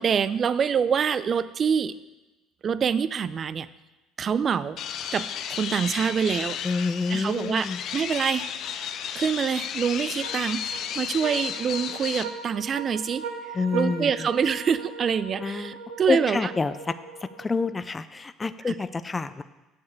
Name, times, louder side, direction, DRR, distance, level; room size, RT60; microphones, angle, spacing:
voice 1, 0.0-2.0 2.6-3.7 4.2-4.8 5.1-6.6 7.1-7.7 7.9-8.5 9.1-13.3 13.7-16.5 18.7-18.8, right 7 dB, 40° right, 16 dB, 0.5 m, -26 dB
sound 1, 4.8-12.2, left 8 dB, 60° left, 0.7 m, -33 dB
voice 2, 6.6-7.8 13.5-14.3 15.4-15.7 16.1-16.9 17.2-19.4, left 4 dB, 20° left, 13 dB, 0.5 m, -27 dB
sound 2, 10.2-17.8, right 5 dB, 90° right, 1.5 m, -39 dB
8.5 x 7.1 x 6.7 m, 1.1 s
supercardioid pair, 100°, 0 cm